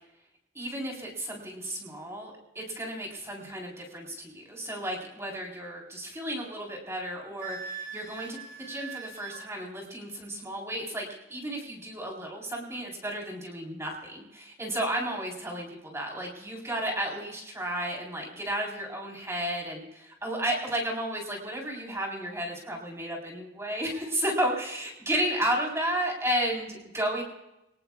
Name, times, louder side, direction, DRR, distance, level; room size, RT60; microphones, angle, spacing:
voice 1, 0.5-27.2, right 1 dB, 15° right, -1 dB, 4.0 m, -33 dB
Wind instrument woodwind instrument, 7.4-9.4, right 6 dB, 60° right, 4.5 m, -41 dB
25.5 x 18.0 x 2.4 m, 0.89 s
head